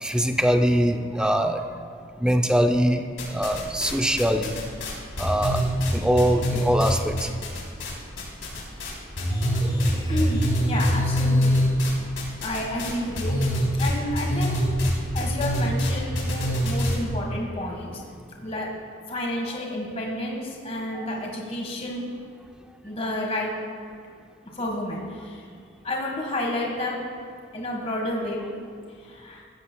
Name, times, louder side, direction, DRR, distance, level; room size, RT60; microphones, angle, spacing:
voice 1, 0.0-1.7 2.2-4.5 5.2-5.7 5.9-7.3 9.6-9.7 10.2-10.3 20.9-21.1, equal, 5° right, 6 dB, 0.5 m, -23 dB
sound 1, 3.2-3.9 4.2-7.9 8.2-8.9 9.2-17.0, equal, 80° left, 3.3 m, -24 dB
voice 2, 10.1-11.6 12.4-13.5 13.8-14.6 15.1-18.0 18.4-18.7 19.1-22.1 22.8-23.5 24.4-25.4 25.8-27.0 27.5-28.4 29.0-29.4, left 1 dB, 30° left, -1 dB, 1.4 m, -30 dB
16.0 x 13.5 x 2.2 m, 2.1 s
head